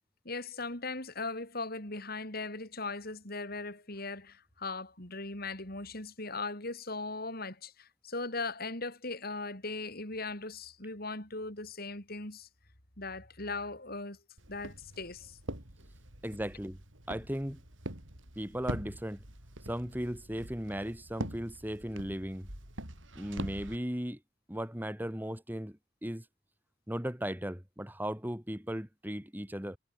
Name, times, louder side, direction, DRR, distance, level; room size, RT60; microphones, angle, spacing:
voice 1, 0.3-12.5 13.0-14.2 14.5-15.4, left 3 dB, 50° left, 7.2 m, -39 dB
Walk footsteps, 14.4-23.8, right 1 dB, 90° right, 5.7 m, -44 dB
voice 2, 16.2-16.8 17.1-17.6 18.4-19.2 19.7-22.5 23.2-24.2 24.5-26.2 26.9-29.8, equal, 10° right, 4.4 m, -37 dB
head